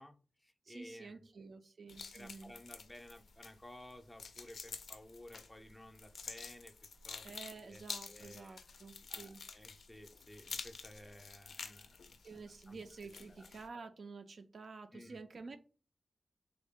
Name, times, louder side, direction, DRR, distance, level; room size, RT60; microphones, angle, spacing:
voice 1, 0.0-1.2 2.1-6.7 7.0-7.3 7.6-7.8 8.1-8.6 9.1-12.2 12.7-12.8 13.3-13.5 14.9-15.2, left 1 dB, 10° left, 0.4 m, -55 dB
voice 2, 0.7-2.5 7.2-9.4 12.2-15.6, right 4 dB, 55° right, 0.3 m, -50 dB
sound 1, 1.9-13.7, left 5 dB, 85° left, 0.4 m, -50 dB
3.4 x 2.1 x 3.5 m
wide cardioid pair, 170°, 0 cm